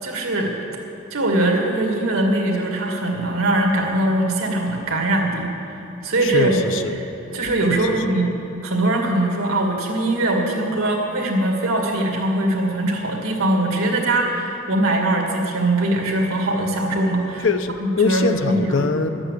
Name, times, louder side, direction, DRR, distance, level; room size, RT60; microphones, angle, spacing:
voice 1, 0.0-0.5 1.1-5.8 6.0-6.5 7.0-7.1 7.3-8.4 8.6-17.5 17.8-18.8, right 1 dB, 90° right, 0 dB, 2.2 m, -21 dB
voice 2, 6.2-7.0 7.7-7.9 17.4-19.1, left 4 dB, 65° left, 8 dB, 0.7 m, -22 dB
12.0 x 8.8 x 8.3 m, 2.8 s
head